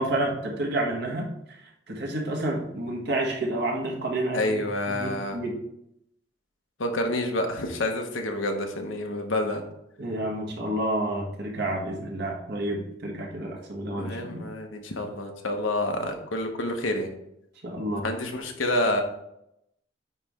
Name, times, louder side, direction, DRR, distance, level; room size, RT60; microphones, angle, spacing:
voice 1, 0.0-4.6 4.9-5.6 10.0-14.4 17.6-18.0, right 1 dB, 60° right, -1 dB, 1.6 m, -30 dB
voice 2, 4.3-5.4 6.8-9.6 14.0-17.1 18.0-19.0, left 1 dB, 90° left, 4 dB, 1.1 m, -28 dB
9.6 x 3.2 x 3.6 m, 0.80 s
head